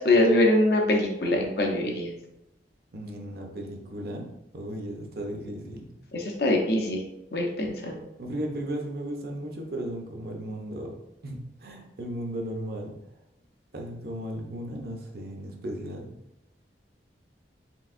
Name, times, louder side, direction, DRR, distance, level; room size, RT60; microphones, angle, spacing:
voice 1, 0.0-2.1 6.1-7.0 7.3-8.0, left 1 dB, 60° left, 1 dB, 0.8 m, -23 dB
voice 2, 2.9-4.3 4.5-5.9 8.2-10.9 11.2-12.9 13.7-16.1, right 1 dB, 55° right, 1 dB, 0.7 m, -35 dB
4.6 x 3.4 x 2.5 m, 0.88 s
head